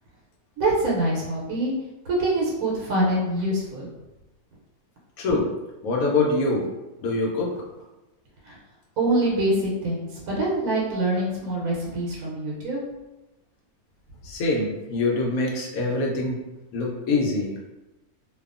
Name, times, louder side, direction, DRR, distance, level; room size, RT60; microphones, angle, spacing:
voice 1, 0.6-1.7 2.1-3.9 8.5-8.6 9.0-12.8, right 1 dB, 85° right, -4 dB, 1.1 m, -25 dB
voice 2, 5.2-5.5 5.8-6.7 7.0-7.5 14.2-16.4 16.7-17.5, left 3 dB, 75° left, -2 dB, 1.0 m, -24 dB
2.7 x 2.3 x 2.4 m, 1.0 s
omnidirectional pair, 1.5 m